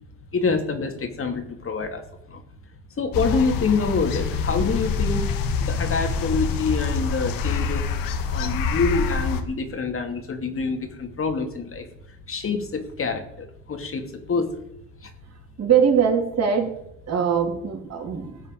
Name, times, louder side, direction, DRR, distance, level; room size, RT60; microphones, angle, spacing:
voice 1, 0.3-2.0 2.3-2.4 3.0-5.3 5.6-7.9 8.3-11.9 12.3-14.6 15.0-15.1, left 4 dB, 40° left, 5 dB, 2.7 m, -26 dB
sound 1, 3.1-9.4, left 5 dB, 75° left, 1.9 m, -26 dB
voice 2, 15.6-16.7 17.1-18.4, right 7 dB, 45° right, 2 dB, 3.6 m, -21 dB
16.0 x 5.5 x 8.9 m, 0.78 s
supercardioid pair, 80°, 35 cm